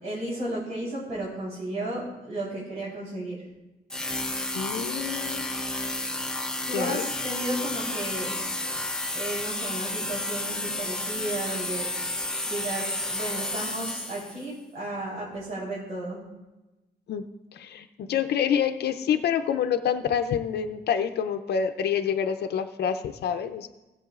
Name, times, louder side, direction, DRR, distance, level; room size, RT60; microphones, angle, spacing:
voice 1, 0.0-3.4 6.7-8.4 9.1-11.9 12.4-16.2, right 1 dB, 85° right, -7 dB, 3.8 m, -33 dB
sound 1, 3.9-14.5, left 1 dB, 5° left, 0.7 m, -31 dB
voice 2, 4.5-5.5 6.7-7.1 17.1-17.2 17.5-23.7, left 8 dB, 70° left, 7 dB, 0.5 m, -27 dB
18.5 x 7.6 x 2.4 m, 1.1 s
cardioid pair, 140°, 17 cm